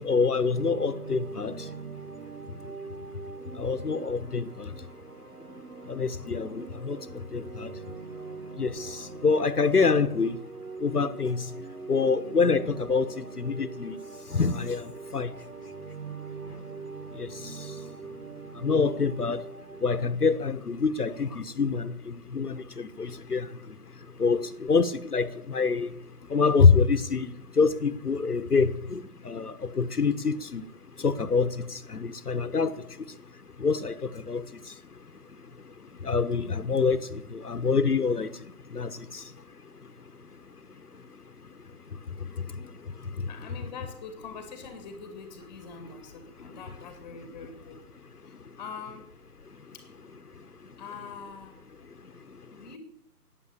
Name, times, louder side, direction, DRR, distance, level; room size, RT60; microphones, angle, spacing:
voice 1, 0.0-1.5 3.6-4.7 5.9-7.0 7.3-7.7 8.6-9.0 9.2-10.3 10.8-11.4 11.9-14.0 14.3-15.3 17.2-17.3 18.6-19.4 19.8-23.5 24.2-25.9 26.3-27.3 27.6-30.6 31.0-32.7 33.6-34.4 36.0-38.3 38.7-38.9, left 5 dB, 70° left, 1.2 m, -26 dB
sound 1, 0.5-20.1, right 4 dB, 65° right, 1.5 m, -42 dB
voice 2, 43.3-47.8 48.2-49.1 49.7-49.9 50.8-51.6 52.5-52.8, left 5 dB, 10° left, 1.9 m, -43 dB
15.0 x 9.5 x 8.6 m
figure-of-eight pair, 150°, 47 cm